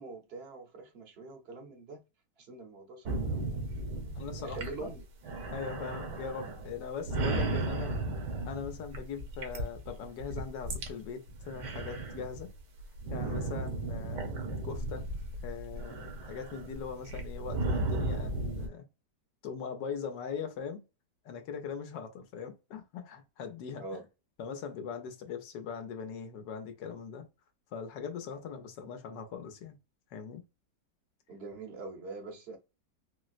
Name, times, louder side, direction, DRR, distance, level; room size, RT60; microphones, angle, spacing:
voice 1, 0.0-2.0 2.4-3.7 4.0-4.1 4.4-5.1 23.8-24.0 31.3-32.6, right 3 dB, 50° right, 0.8 m, -44 dB
sound 1, 3.1-10.9 11.3-18.7, right 2 dB, 70° right, 1.4 m, -35 dB
voice 2, 4.1-4.9 5.5-8.0 8.4-12.5 13.1-15.1 15.4-18.9 19.4-20.8 21.2-23.8 24.4-27.3 27.7-29.8 30.1-30.4, left 6 dB, 80° left, 1.4 m, -41 dB
4.4 x 2.0 x 2.4 m
omnidirectional pair, 1.9 m